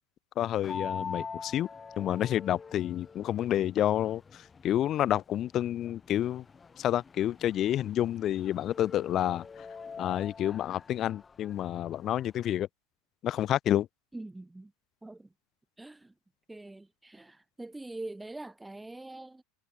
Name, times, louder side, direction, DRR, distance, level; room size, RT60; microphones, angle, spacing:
voice 1, 0.4-1.7 2.0-6.5 6.8-9.7 10.0-12.7 13.2-13.9, left 12 dB, 40° left, 0.4 m, -29 dB
sound 1, 0.6-12.5, left 5 dB, 20° left, 6.2 m, -45 dB
voice 2, 14.1-14.7 15.0-15.3 15.8-16.1 16.5-19.4, right 2 dB, 5° right, 4.0 m, -43 dB
supercardioid pair, 115°, 0 cm